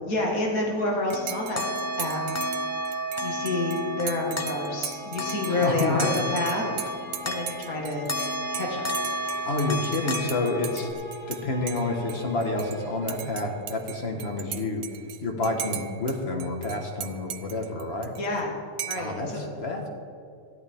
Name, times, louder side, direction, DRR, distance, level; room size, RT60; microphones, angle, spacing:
voice 1, 0.1-1.7 2.0-2.2 3.2-6.8 7.2-8.1 8.5-8.9 18.2-18.5 18.9-19.5, left 2 dB, 75° left, -1 dB, 2.2 m, -28 dB
sound 1, 0.7-7.8 8.1-10.9, equal, 15° left, 0.5 m, -32 dB
Dishes pots and pans / Cutlery silverware / Chink clink, 1.1-11.4 11.7-12.8 13.1-16.1 16.4-18.4 18.8-19.2, right 10 dB, 80° right, 1.1 m, -38 dB
sound 2, 1.2-14.0, left 1 dB, 45° right, 1.2 m, -44 dB
voice 2, 5.5-6.0 9.4-11.0 11.3-14.8 15.2-18.2 18.9-19.9, left 2 dB, 45° left, 2 dB, 1.7 m, -29 dB
14.5 x 11.5 x 3.6 m, 2.4 s
omnidirectional pair, 1.5 m